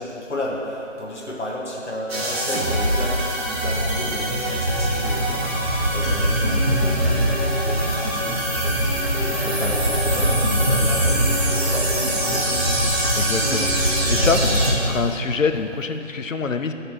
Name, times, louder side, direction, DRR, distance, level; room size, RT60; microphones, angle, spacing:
voice 1, 0.0-5.5 5.8-7.4 7.6-13.6 14.2-15.1, left 1 dB, 65° left, -3 dB, 1.2 m, -33 dB
sound 1, 2.1-14.7, right 1 dB, 50° right, 1.5 m, -22 dB
sound 2, 7.8-8.5 9.3-10.2 11.1-12.0, equal, 15° left, 1.2 m, -41 dB
voice 2, 13.1-13.7 14.1-14.4 14.8-16.7, left 5 dB, 85° left, 8 dB, 0.7 m, -25 dB
11.0 x 6.5 x 3.0 m, 2.8 s
figure-of-eight pair, 160°, 38 cm